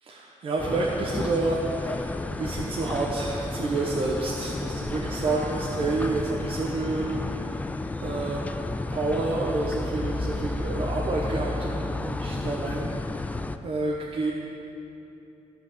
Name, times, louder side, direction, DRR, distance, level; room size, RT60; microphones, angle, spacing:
voice 1, 0.0-13.3 13.6-14.3, right 3 dB, 45° right, -3 dB, 1.0 m, -29 dB
sound 1, 0.6-13.6, left 2 dB, 10° left, 0.3 m, -32 dB
14.5 x 5.7 x 7.3 m, 3.0 s
wide cardioid pair, 155°, 13 cm